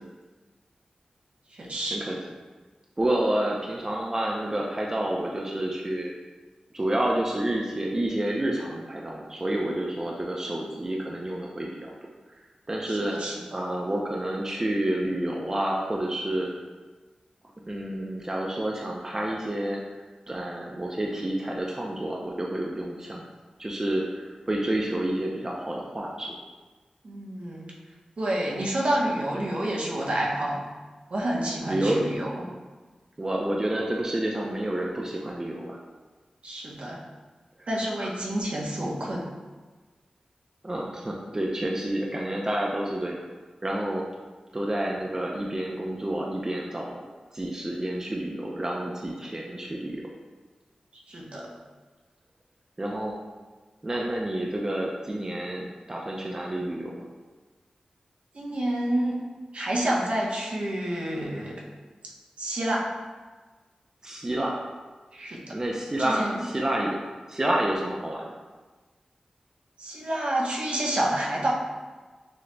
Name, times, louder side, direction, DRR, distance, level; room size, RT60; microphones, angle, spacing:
voice 1, 1.5-2.0 12.9-13.4 27.0-27.7 28.2-30.6 31.1-32.4 36.4-37.0 37.7-39.2 51.1-51.5 58.3-59.3 59.5-61.6 62.4-62.8 65.1-65.6 66.0-66.5 69.8-71.5, right 1 dB, 65° right, -3 dB, 0.9 m, -28 dB
voice 2, 3.0-6.1 6.7-11.9 12.7-13.2 13.5-16.5 17.7-19.8 20.3-23.3 23.6-26.4 31.7-32.0 33.2-35.8 37.6-37.7 38.0-38.1 40.6-43.2 43.6-44.0 44.5-47.0 47.3-50.0 52.8-53.1 53.8-57.1 64.0-64.6 65.5-67.0 67.3-68.3, right 1 dB, 25° right, -2 dB, 0.5 m, -29 dB
6.2 x 3.0 x 2.2 m, 1.3 s
wide cardioid pair, 60°, 2 cm